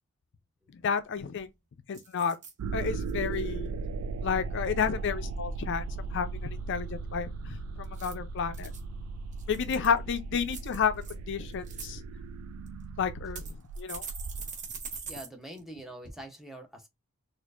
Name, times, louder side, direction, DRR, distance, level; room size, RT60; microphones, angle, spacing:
voice 1, 0.8-1.5 1.9-2.4 2.7-3.7 4.2-5.8 6.1-7.6 8.0-8.7 9.5-12.0 13.0-13.4 13.8-14.0, left 6 dB, 55° left, 0.4 m, -31 dB
sound 1, 0.8-0.9 1.2-1.5 1.9-2.5 3.0-3.4 7.8-8.8 9.3-10.0 10.5-11.1 11.5-11.9 12.7-12.8 13.4-15.3 15.6-15.7 16.0-16.1, right 5 dB, 35° right, 0.8 m, -43 dB
sound 2, 2.6-14.5, right 3 dB, 80° right, 0.3 m, -37 dB
voice 2, 15.1-16.9, right 1 dB, ahead, 0.6 m, -44 dB
4.2 x 2.5 x 2.4 m
head